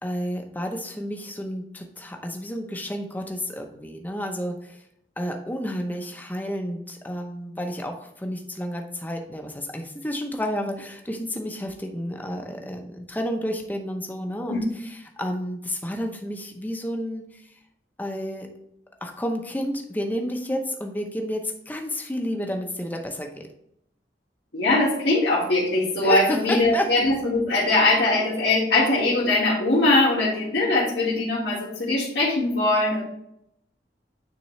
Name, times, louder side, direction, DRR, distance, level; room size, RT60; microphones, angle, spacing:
voice 1, 0.0-4.8 5.2-17.5 18.0-18.5 19.0-23.5 26.0-26.9, equal, 10° left, 3 dB, 0.7 m, -31 dB
voice 2, 24.5-33.0, left 2 dB, 80° left, -9 dB, 1.9 m, -21 dB
9.3 x 3.8 x 3.1 m, 0.75 s
head